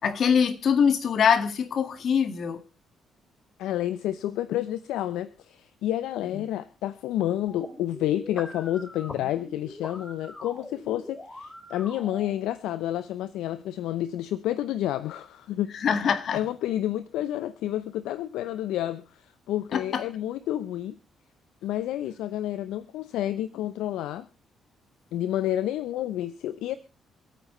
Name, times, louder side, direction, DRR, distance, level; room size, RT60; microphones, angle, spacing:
voice 1, 0.0-2.6 15.8-16.4 19.7-20.0, left 7 dB, 60° left, 2.0 m, -23 dB
voice 2, 3.6-15.7 16.3-21.0 21.6-24.3 25.1-26.8, left 12 dB, 80° left, 0.7 m, -30 dB
sound 1, 7.5-12.5, left 2 dB, 25° left, 3.1 m, -43 dB
27.0 x 9.2 x 3.2 m
hypercardioid pair, 50°, 0 cm